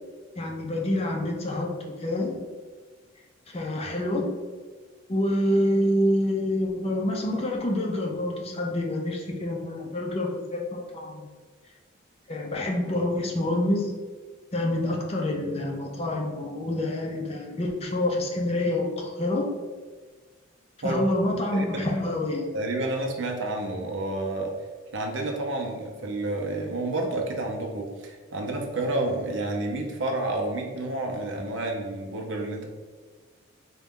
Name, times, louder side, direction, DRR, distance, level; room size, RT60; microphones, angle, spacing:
voice 1, 0.4-2.3 3.5-4.3 5.1-11.3 12.3-13.9 14.5-19.5 20.8-22.5, left 1 dB, 30° left, 0 dB, 0.5 m, -27 dB
voice 2, 22.5-24.5 24.9-32.7, right 2 dB, 65° right, 2 dB, 0.6 m, -30 dB
3.9 x 2.3 x 3.6 m, 1.4 s
head